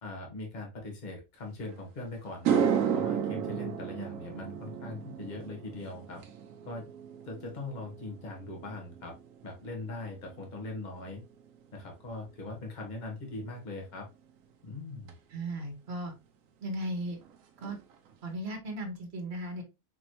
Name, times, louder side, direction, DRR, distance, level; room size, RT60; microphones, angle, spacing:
voice 1, 0.0-2.6 2.9-6.2 6.6-6.9 7.3-9.2 9.4-11.2 11.7-14.1 14.6-15.2, left 2 dB, 35° left, 1 dB, 1.2 m, -41 dB
sound 1, 1.7-1.8 2.3-10.8 11.1-11.5 15.1-15.2 16.8-16.9 17.2-17.4 17.6-18.2, right 8 dB, 85° right, 1.0 m, -33 dB
voice 2, 15.3-16.1 16.6-17.2 17.6-17.8 18.2-19.6, right 1 dB, 55° right, 3 dB, 1.4 m, -36 dB
4.5 x 3.0 x 2.9 m, 0.25 s
omnidirectional pair, 1.4 m